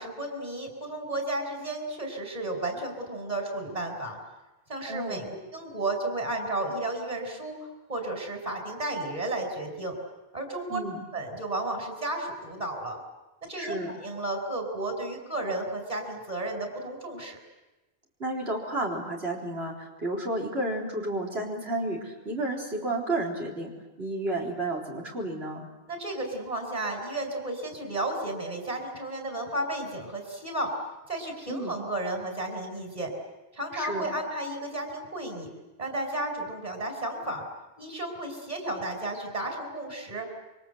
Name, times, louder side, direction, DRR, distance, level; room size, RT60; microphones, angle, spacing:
voice 1, 0.0-4.2 4.7-10.0 10.3-10.8 11.1-13.0 13.5-17.4 25.9-30.7 31.1-33.1 33.5-35.5 35.8-37.4 37.8-40.3, right 2 dB, 40° right, 4 dB, 5.0 m, -33 dB
voice 2, 4.9-5.3 10.7-11.0 13.6-13.9 18.2-23.7 24.0-25.7 31.5-31.7 33.7-34.1, right 2 dB, 80° right, -1 dB, 4.4 m, -31 dB
28.0 x 25.0 x 8.0 m, 1.1 s
omnidirectional pair, 1.0 m